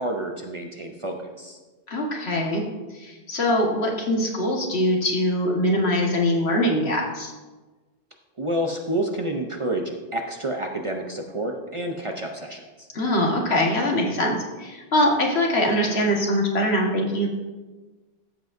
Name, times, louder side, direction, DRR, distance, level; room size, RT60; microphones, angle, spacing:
voice 1, 0.0-1.6 8.4-12.9, right 1 dB, 35° right, 2 dB, 0.6 m, -29 dB
voice 2, 1.9-2.6 2.9-7.3 12.9-17.3, left 1 dB, 75° left, 0 dB, 1.7 m, -23 dB
14.0 x 7.7 x 2.6 m, 1.2 s
omnidirectional pair, 1.1 m